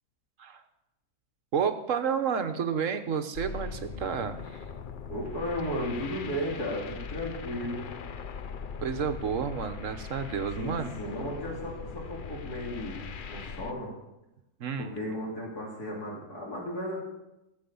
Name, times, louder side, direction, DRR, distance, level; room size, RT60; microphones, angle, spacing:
voice 1, 1.5-4.6 8.8-10.9 14.6-15.0, right 7 dB, 60° right, 8 dB, 1.4 m, -30 dB
sound 1, 3.3-13.7, left 6 dB, 50° left, 0.6 m, -40 dB
voice 2, 5.1-7.9 10.6-14.0 14.8-17.0, equal, 75° left, -3 dB, 3.6 m, -35 dB
15.5 x 7.9 x 7.1 m, 0.93 s
omnidirectional pair, 1.7 m